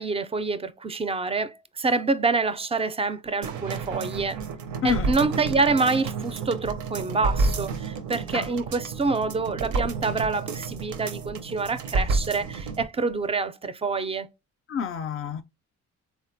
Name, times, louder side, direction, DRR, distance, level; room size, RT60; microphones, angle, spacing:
voice 1, 0.0-4.4 4.8-14.3, right 4 dB, 20° right, 0.3 m, -27 dB
sound 1, 3.4-12.9 13.2-13.3, right 4 dB, 70° right, 0.6 m, -30 dB
voice 2, 4.8-5.1 8.3-8.5 14.7-15.4, left 7 dB, 45° left, 0.4 m, -28 dB
3.7 x 2.1 x 2.6 m
cardioid pair, 90°, 30 cm